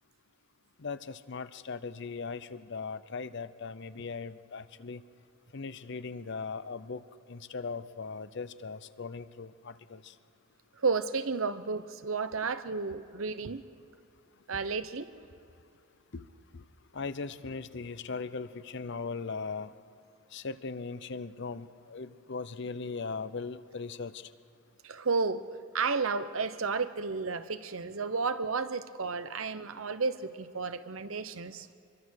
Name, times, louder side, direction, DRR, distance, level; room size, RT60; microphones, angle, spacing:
voice 1, 0.8-5.0 5.5-7.0 7.3-10.1 14.5-14.6 16.1-16.2 16.5-16.6 16.9-19.7 20.3-24.3, left 4 dB, 55° left, 14 dB, 0.7 m, -39 dB
voice 2, 10.8-13.6 14.5-15.1 24.8-25.4 25.7-31.7, right 4 dB, 75° right, 12 dB, 0.9 m, -32 dB
25.0 x 22.5 x 6.5 m, 2.7 s
head